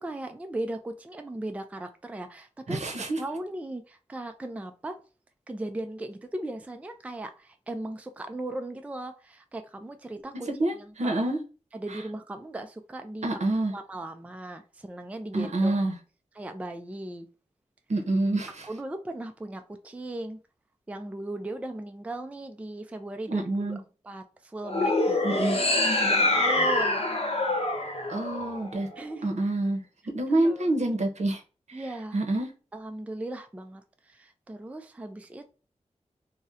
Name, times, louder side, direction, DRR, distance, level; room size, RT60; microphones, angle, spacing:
voice 1, 0.0-2.8 3.2-5.0 5.5-10.5 11.7-13.3 13.7-15.8 16.4-17.3 18.7-20.4 20.9-23.5 24.0-25.6 26.0-27.0 29.0-29.3 30.4-30.7 31.7-32.2 32.7-35.5, right 1 dB, 10° right, 7 dB, 0.3 m, -37 dB
voice 2, 2.7-3.2 10.5-11.4 11.9-12.0 13.2-13.7 15.3-15.9 17.9-18.7 23.3-23.8 25.2-25.6 28.1-28.9 29.2-31.4 31.7-31.8 32.1-32.5, right 2 dB, 65° right, 4 dB, 0.8 m, -27 dB
sound 1, 24.6-29.0, left 2 dB, 55° left, 0.8 m, -25 dB
2.7 x 2.1 x 3.6 m, 0.34 s
wide cardioid pair, 85°, 12 cm